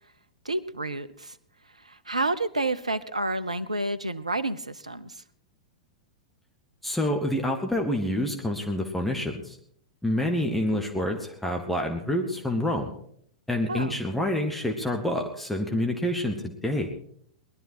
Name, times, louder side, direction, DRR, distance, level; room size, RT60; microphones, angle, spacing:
voice 1, 0.4-1.4 1.8-5.1 13.7-14.0, right 2 dB, 80° right, 14 dB, 0.8 m, -29 dB
voice 2, 6.8-9.6 10.0-12.9 13.5-16.9, left 1 dB, 5° left, 1 dB, 1.7 m, -27 dB
20.0 x 12.0 x 4.7 m, 0.64 s
figure-of-eight pair, 95°, 3 cm